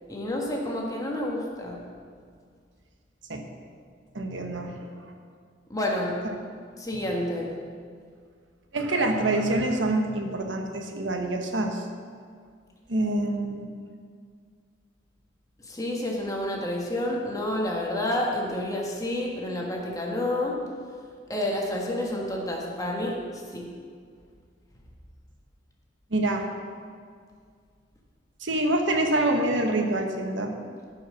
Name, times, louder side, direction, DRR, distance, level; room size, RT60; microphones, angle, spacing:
voice 1, 0.1-1.8 5.7-6.2 6.8-7.5 15.7-20.6 21.3-23.2 23.5-23.7, left 1 dB, 20° left, -1 dB, 1.5 m, -29 dB
voice 2, 4.1-5.1 6.2-6.3 8.7-11.8 12.9-13.7 26.1-26.5 28.4-30.7, right 1 dB, 80° right, 3 dB, 1.2 m, -26 dB
14.0 x 5.6 x 6.3 m, 2.1 s
head